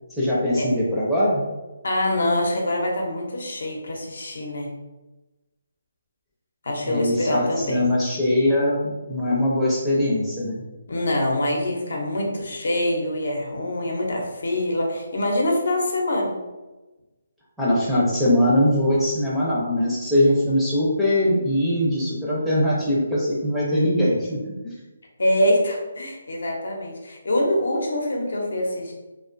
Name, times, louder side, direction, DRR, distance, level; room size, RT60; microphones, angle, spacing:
voice 1, 0.2-1.4 6.9-10.6 17.6-24.7, left 1 dB, 5° right, -8 dB, 0.5 m, -21 dB
voice 2, 1.8-4.7 6.6-7.9 10.9-16.3 25.2-28.9, left 1 dB, 70° left, 0 dB, 0.7 m, -24 dB
2.4 x 2.3 x 2.5 m, 1.1 s
hypercardioid pair, 165°, 0 cm